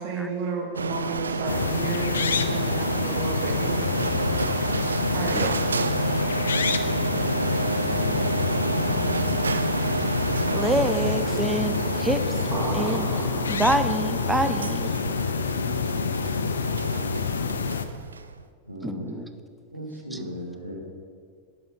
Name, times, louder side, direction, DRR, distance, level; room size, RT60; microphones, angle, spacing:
voice 1, 0.0-3.8 5.1-5.4, right 3 dB, 45° right, 1 dB, 1.7 m, -32 dB
Printer, 0.7-18.4, right 4 dB, 75° right, 0.3 m, -29 dB
sound 1, 1.5-17.8, left 6 dB, 70° left, 0.4 m, -27 dB
voice 2, 10.5-12.4 12.7-13.1 13.5-14.9 18.8-19.3 20.1-20.2, right 1 dB, 5° right, 8 dB, 0.5 m, -27 dB
sound 2, 12.5-14.2, right 2 dB, 30° right, 1.5 m, -34 dB
voice 3, 18.6-19.1 19.7-20.7, equal, 90° right, -3 dB, 1.6 m, -36 dB
10.5 x 5.9 x 5.0 m, 2.1 s
figure-of-eight pair, 90°, 0 cm